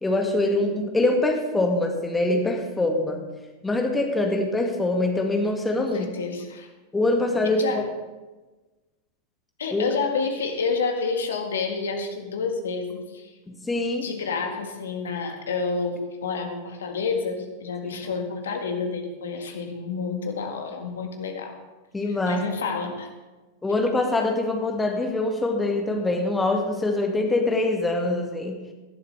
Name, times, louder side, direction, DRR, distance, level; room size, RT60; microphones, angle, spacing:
voice 1, 0.0-3.2 3.6-6.1 6.9-7.8 9.7-10.0 13.5-14.1 21.9-22.5 23.6-28.6, left 2 dB, 10° left, 3 dB, 1.9 m, -24 dB
voice 2, 5.9-6.7 7.6-7.9 9.6-13.3 14.0-21.6 22.3-23.1, left 5 dB, 65° left, 4 dB, 1.8 m, -29 dB
18.5 x 11.5 x 3.4 m, 1.2 s
figure-of-eight pair, 90°, 0 cm